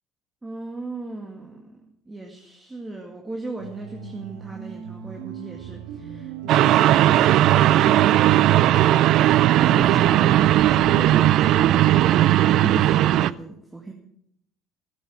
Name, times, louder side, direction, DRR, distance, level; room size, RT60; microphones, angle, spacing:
voice 1, 0.4-8.8 9.7-13.9, right 2 dB, 15° right, 1 dB, 2.0 m, -37 dB
sound 1, 3.6-12.8, right 7 dB, 85° right, 1.7 m, -39 dB
sound 2, 6.5-13.3, right 13 dB, 65° right, 0.4 m, -17 dB
14.5 x 8.4 x 7.3 m, 0.70 s
cardioid pair, 105°, 0 cm